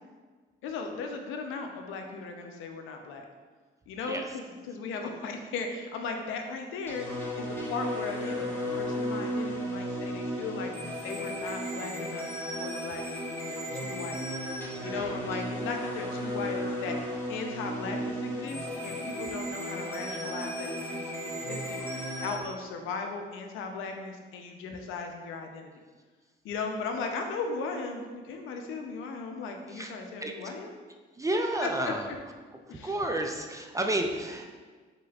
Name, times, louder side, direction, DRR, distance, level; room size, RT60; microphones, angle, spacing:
voice 1, 0.6-3.3 3.9-10.7 11.0-14.2 14.8-25.7 26.4-30.7 31.6-31.7 32.7-33.0, left 4 dB, 90° left, 4 dB, 0.5 m, -37 dB
sound 1, 6.9-22.4, equal, 10° left, 1.1 m, -34 dB
voice 2, 31.2-32.1 32.7-34.6, right 1 dB, 15° right, 3 dB, 0.4 m, -31 dB
5.0 x 3.6 x 2.3 m, 1.4 s
cardioid pair, 90°, 20 cm